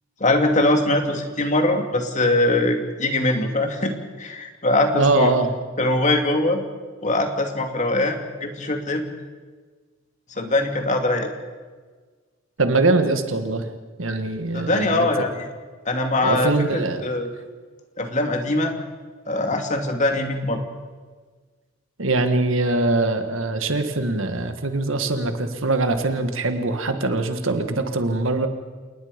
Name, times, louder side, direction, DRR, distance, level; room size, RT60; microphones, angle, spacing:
voice 1, 0.2-5.3 5.8-6.6 7.0-9.0 10.3-11.3 14.5-15.5 15.9-17.3 18.0-18.7 19.3-20.6, left 2 dB, 35° left, 5 dB, 2.5 m, -22 dB
voice 2, 4.9-5.5 12.6-13.7 14.0-15.1 16.2-17.0 22.0-28.5, right 2 dB, 75° right, 8 dB, 1.8 m, -22 dB
28.5 x 19.5 x 5.3 m, 1.4 s
head